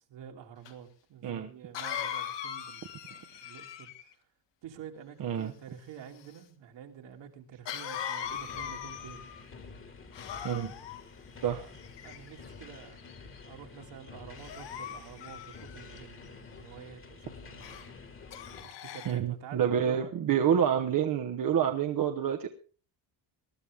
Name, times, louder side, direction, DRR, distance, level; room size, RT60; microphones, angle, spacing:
voice 1, 0.0-4.1 4.6-9.3 11.5-11.7 12.0-13.1 13.5-18.0 18.6-20.1, right 8 dB, 65° right, 3 dB, 2.7 m, -48 dB
Cough, 0.7-0.8 1.7-4.1 7.7-9.4 10.1-11.0 11.8-12.5 13.1-13.4 14.4-16.0 17.6-17.9 18.3-19.2, left 9 dB, 65° left, 1.8 m, -40 dB
voice 2, 5.2-5.5 10.4-10.7 11.4-11.6 19.1-22.5, right 8 dB, 45° right, 4 dB, 1.1 m, -28 dB
sound 1, 8.2-18.6, left 4 dB, 25° left, 1.8 m, -49 dB
20.0 x 12.5 x 3.5 m, 0.38 s
cardioid pair, 130°, 46 cm